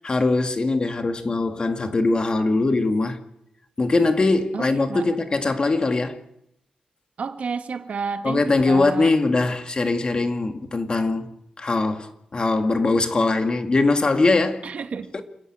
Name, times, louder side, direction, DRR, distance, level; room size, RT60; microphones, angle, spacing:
voice 1, 0.0-3.2 3.8-6.2 8.2-14.7 15.1-15.2, left 3 dB, 40° left, 2.1 m, -21 dB
voice 2, 4.5-5.1 7.2-9.1 14.6-15.1, right 5 dB, 75° right, 1.5 m, -30 dB
28.5 x 11.0 x 8.9 m
wide cardioid pair, 105°, 2 cm